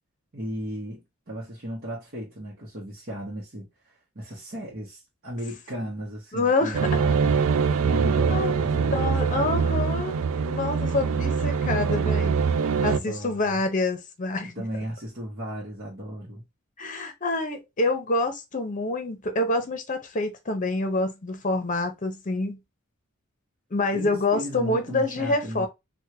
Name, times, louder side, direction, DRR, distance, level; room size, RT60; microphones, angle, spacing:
voice 1, 0.3-9.6 12.9-13.6 14.4-16.4 23.9-25.7, equal, 45° right, 0.9 m, -35 dB
voice 2, 6.3-6.8 8.3-8.5 8.9-10.2 10.4-12.4 12.8-14.5 16.8-22.6 23.7-25.7, left 2 dB, 40° left, 0.8 m, -27 dB
sound 1, 6.7-13.0, right 5 dB, 70° right, 0.4 m, -23 dB
3.4 x 2.3 x 2.9 m
head